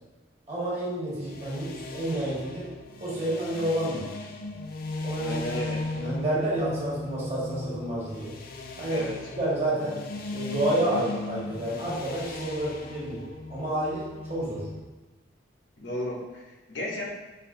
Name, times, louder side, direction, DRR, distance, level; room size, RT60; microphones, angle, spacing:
voice 1, 0.5-2.7 3.0-4.0 5.0-5.3 5.9-8.3 8.8-10.0 10.3-13.2 13.5-14.6, right 1 dB, 35° right, -8 dB, 1.4 m, -29 dB
sound 1, 1.1-14.8, left 2 dB, 50° left, 0.3 m, -37 dB
voice 2, 5.2-5.8 8.9-9.2 15.8-17.0, left 1 dB, 70° left, -3 dB, 0.8 m, -33 dB
5.4 x 2.2 x 2.6 m, 1.2 s
head